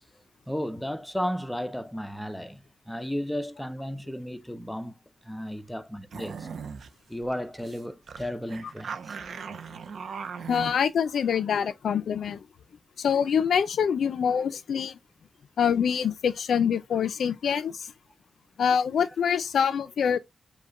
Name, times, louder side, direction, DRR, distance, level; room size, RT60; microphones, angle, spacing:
voice 1, 0.5-2.6 2.9-5.0 5.2-6.5 7.1-9.2, equal, 5° left, 0.4 m, -34 dB
sound 1, 6.1-6.9 7.2-7.3 7.6-10.7, right 6 dB, 65° right, 0.5 m, -38 dB
voice 2, 10.5-12.4 13.0-15.0 15.6-17.9 18.6-20.2, left 7 dB, 85° left, 0.3 m, -25 dB
5.1 x 2.1 x 3.6 m
wide cardioid pair, 165°, 0 cm